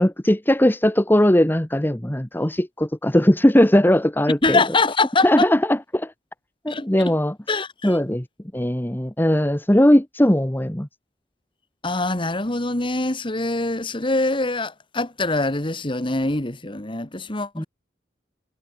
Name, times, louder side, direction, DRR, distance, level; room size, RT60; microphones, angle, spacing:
voice 1, 0.0-4.6 5.2-6.1 6.6-7.3 7.8-8.2 8.5-10.9 17.5-17.6, left 1 dB, 10° left, 1.3 m, -19 dB
voice 2, 4.4-5.5 6.7-7.1 7.5-8.0 11.8-17.7, left 2 dB, 30° left, 1.9 m, -24 dB
head